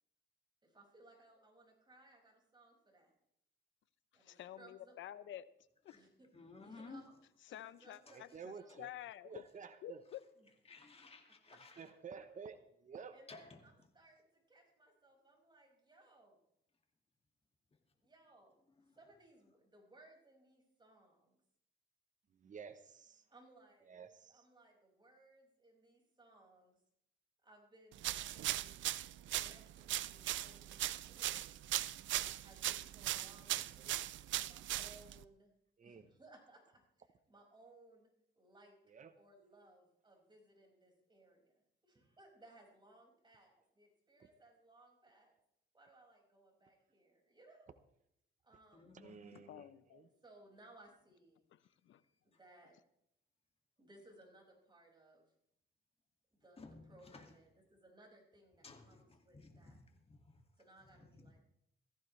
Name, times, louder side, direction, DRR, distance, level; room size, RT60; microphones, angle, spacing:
voice 1, 0.6-3.2 4.1-5.0 5.9-6.3 6.6-7.1 7.5-8.8 10.4-10.5 11.5-11.6 13.1-16.4 18.0-18.6 18.9-21.4 23.3-24.0 24.3-26.8 27.4-28.9 29.3-31.6 32.4-33.9 34.4-35.5 35.8-38.1 38.4-38.8 39.2-41.5 41.8-45.4 45.7-47.7 48.4-49.0 50.2-51.5 52.2-52.8 53.8-55.3 56.3-59.8 60.6-61.4, right 2 dB, 25° right, 0 dB, 6.0 m, -63 dB
voice 2, 4.1-5.5 5.8-6.0 7.5-9.4 9.8-10.2 49.3-50.1 51.5-52.0, left 12 dB, 70° left, 16 dB, 0.8 m, -50 dB
voice 3, 6.3-7.0 8.1-8.2 8.7-8.8 10.7-11.8 13.3-13.6 48.7-49.2 56.6-57.3 58.6-59.8 60.1-60.4 61.0-61.4, left 3 dB, 30° left, 3 dB, 2.3 m, -55 dB
voice 4, 8.1-8.9 9.2-10.0 11.8-13.2 22.4-23.2 23.9-24.4 33.5-34.0 35.8-36.1 38.9-39.1 48.9-49.7 49.9-50.1, right 6 dB, 40° right, 10 dB, 1.0 m, -52 dB
sound 1, 28.0-35.2, right 14 dB, 75° right, 0.5 m, -39 dB
17.0 x 14.5 x 3.3 m, 0.75 s
cardioid pair, 90°, 20 cm